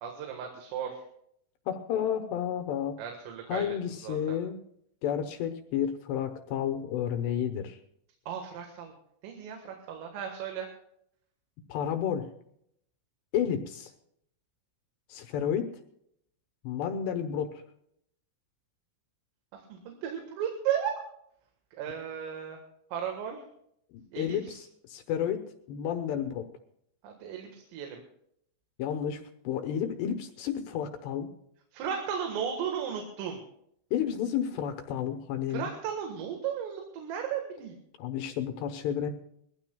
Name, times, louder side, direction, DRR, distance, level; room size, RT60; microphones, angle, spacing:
voice 1, 0.0-1.0 3.0-3.7 4.0-4.4 8.3-8.9 9.2-10.7 19.5-21.0 21.8-22.6 22.9-23.4 24.1-24.6 27.0-28.0 31.7-33.4 35.5-37.8, right 8 dB, 80° right, 3 dB, 4.2 m, -35 dB
voice 2, 1.7-3.0 3.5-4.6 5.0-7.8 11.7-12.3 13.3-13.9 15.1-15.7 16.6-17.6 23.9-25.4 25.7-26.5 28.8-31.3 33.9-35.7 38.0-39.1, left 9 dB, 75° left, 6 dB, 2.7 m, -31 dB
22.0 x 15.5 x 2.3 m, 0.72 s
omnidirectional pair, 5.8 m